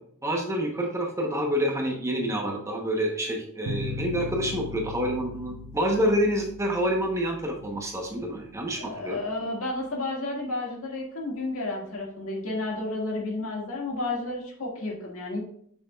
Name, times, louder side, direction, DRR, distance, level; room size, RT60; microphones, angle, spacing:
voice 1, 0.2-9.2, equal, 15° right, 0 dB, 0.9 m, -27 dB
sound 1, 3.7-8.8, left 2 dB, 80° right, 0.8 m, -38 dB
voice 2, 8.8-15.4, left 2 dB, 70° left, -2 dB, 1.9 m, -31 dB
6.9 x 6.3 x 2.3 m, 0.65 s
head